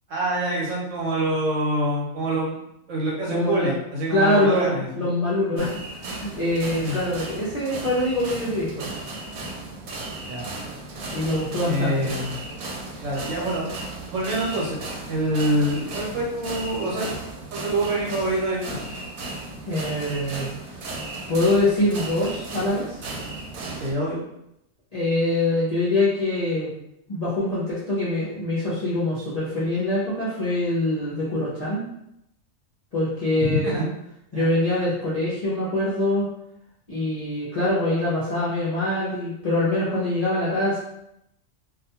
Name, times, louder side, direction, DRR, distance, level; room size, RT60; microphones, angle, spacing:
voice 1, 0.1-2.6 2.9-5.1 5.5-5.6 6.8-7.0 10.3-10.5 11.6-12.4 13.0-13.6 14.0-14.8 15.1-17.1 17.5-18.8 23.8-24.2 33.4-33.9 34.3-34.5, right 1 dB, 70° right, -4 dB, 1.1 m, -26 dB
voice 2, 3.3-3.8 4.1-8.9 11.1-12.1 19.7-20.8 21.3-23.0 24.9-26.7 27.1-31.8 32.9-33.9 34.3-36.2 36.9-40.8, left 1 dB, 45° left, -9 dB, 0.5 m, -24 dB
sound 1, 5.6-23.9, right 2 dB, 85° right, 1.0 m, -35 dB
2.4 x 2.2 x 2.8 m, 0.80 s
omnidirectional pair, 1.4 m